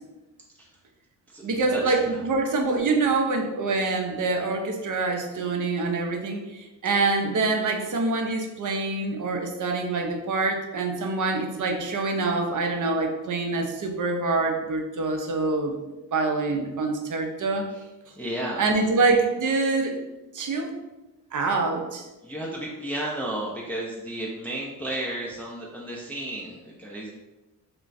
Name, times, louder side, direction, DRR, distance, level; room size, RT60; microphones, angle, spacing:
voice 1, 1.4-15.8 16.1-17.6 18.6-20.0 20.3-20.7 21.3-22.0, right 3 dB, 40° right, 3 dB, 0.7 m, -25 dB
voice 2, 18.2-18.7 22.2-27.1, right 1 dB, 5° left, -4 dB, 0.5 m, -32 dB
2.3 x 2.2 x 4.0 m, 1.1 s
supercardioid pair, 50°, 46 cm